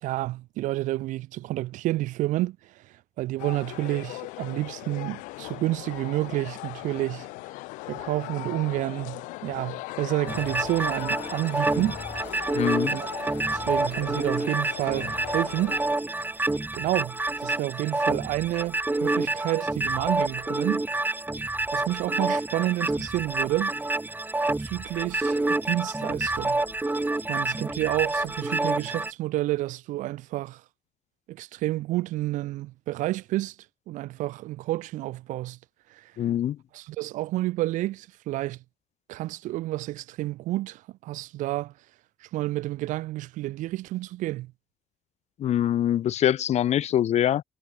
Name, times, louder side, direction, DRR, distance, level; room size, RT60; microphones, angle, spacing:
voice 1, 0.0-7.3 7.9-12.5 12.9-13.1 13.5-15.8 16.2-20.8 21.3-23.7 24.6-26.6 27.3-30.6 31.3-33.6 33.9-35.6 35.9-36.1 36.7-38.6 39.1-41.7 42.2-44.5, right 16 dB, 70° right, 2.0 m, -30 dB
sound 1, 3.4-15.8, left 22 dB, 80° left, 5.8 m, -39 dB
sound 2, 10.3-29.1, right 2 dB, 15° right, 1.0 m, -28 dB
voice 2, 12.5-13.0 36.2-36.6 45.4-47.4, left 11 dB, 55° left, 0.6 m, -24 dB
hypercardioid pair, 50°, 13 cm